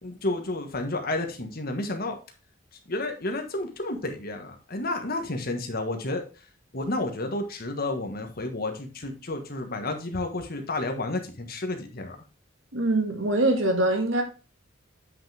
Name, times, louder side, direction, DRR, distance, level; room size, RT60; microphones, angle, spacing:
voice 1, 0.0-2.2 2.9-6.2 6.7-12.2, left 2 dB, 50° left, 1.5 m, -31 dB
voice 2, 12.7-14.2, right 1 dB, 85° right, 1.9 m, -23 dB
8.7 x 5.9 x 3.4 m
head